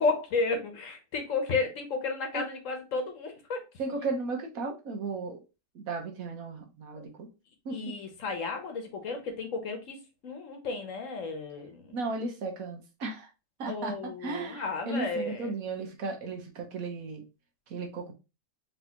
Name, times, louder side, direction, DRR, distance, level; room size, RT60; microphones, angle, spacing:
voice 1, 0.0-3.6 7.7-10.0 10.2-12.0 13.7-15.5, left 4 dB, 65° left, 1.2 m, -32 dB
voice 2, 3.8-5.4 5.7-7.3 7.6-7.9 11.9-13.3 13.6-17.2 17.7-18.1, right 3 dB, 70° right, 1.4 m, -35 dB
4.1 x 3.3 x 2.8 m
omnidirectional pair, 1.5 m